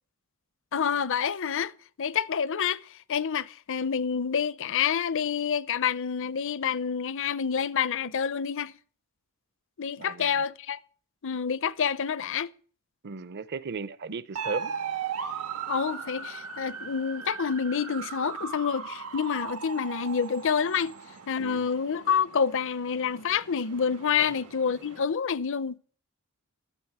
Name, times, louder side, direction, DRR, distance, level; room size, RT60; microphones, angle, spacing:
voice 1, 0.7-1.7 2.0-8.7 9.8-10.8 11.2-12.5 15.7-21.0 21.3-25.8, left 7 dB, 60° left, 0.6 m, -28 dB
voice 2, 10.0-10.4 13.0-14.7 21.4-21.7 24.2-24.3, right 4 dB, 50° right, 0.7 m, -36 dB
sound 1, 14.4-25.0, right 6 dB, 85° right, 1.7 m, -38 dB
12.5 x 7.9 x 7.8 m
head